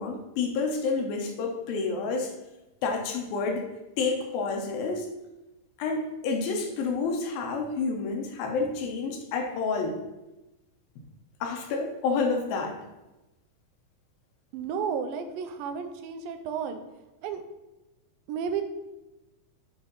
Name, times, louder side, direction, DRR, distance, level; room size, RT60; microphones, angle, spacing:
voice 1, 0.0-2.3 2.8-3.7 4.0-5.1 5.8-10.0 11.4-12.8, left 4 dB, 85° left, 2 dB, 2.7 m, -29 dB
voice 2, 14.5-16.8 17.2-17.4 18.3-18.6, right 7 dB, 85° right, 8 dB, 2.3 m, -32 dB
8.0 x 4.8 x 3.9 m, 1.0 s
omnidirectional pair, 4.1 m